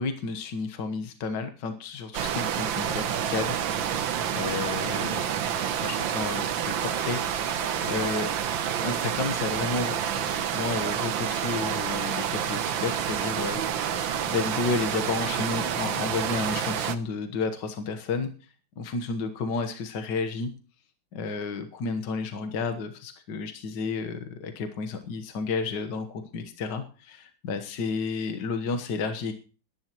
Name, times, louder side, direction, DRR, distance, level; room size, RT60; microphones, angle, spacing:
voice 1, 0.0-3.6 4.4-5.3 5.8-7.6 7.8-8.3 8.8-14.0 14.2-18.3 18.8-20.5 21.1-29.3, left 4 dB, 65° left, 7 dB, 1.9 m, -31 dB
sound 1, 2.1-17.0, right 9 dB, 75° right, 1.7 m, -28 dB
22.0 x 11.0 x 3.0 m, 0.37 s
omnidirectional pair, 2.1 m